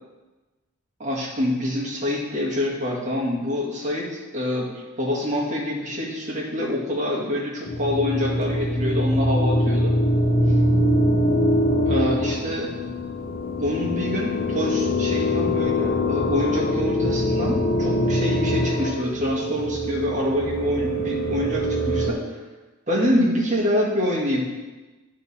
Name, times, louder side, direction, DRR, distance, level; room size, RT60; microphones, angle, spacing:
voice 1, 1.0-4.7 5.0-9.9 11.9-12.7 13.6-22.2 22.9-24.4, left 1 dB, 35° right, -4 dB, 1.7 m, -26 dB
sound 1, 7.7-22.1, left 1 dB, 45° left, 0.7 m, -23 dB
10.5 x 3.7 x 4.2 m, 1.2 s
head